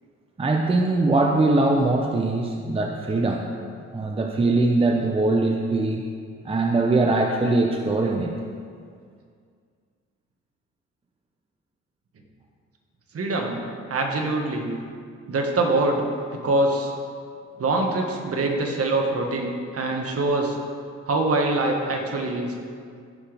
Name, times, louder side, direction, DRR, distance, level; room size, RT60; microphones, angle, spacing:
voice 1, 0.4-3.5 3.9-6.0 6.4-8.3, right 2 dB, 20° right, 2 dB, 0.7 m, -21 dB
voice 2, 13.1-13.6 13.9-14.7 15.3-16.0 16.3-16.9 17.6-20.6 21.1-22.5, right 2 dB, 50° right, 1 dB, 1.6 m, -24 dB
15.5 x 5.8 x 3.5 m, 2.1 s
cardioid pair, 90°, 30 cm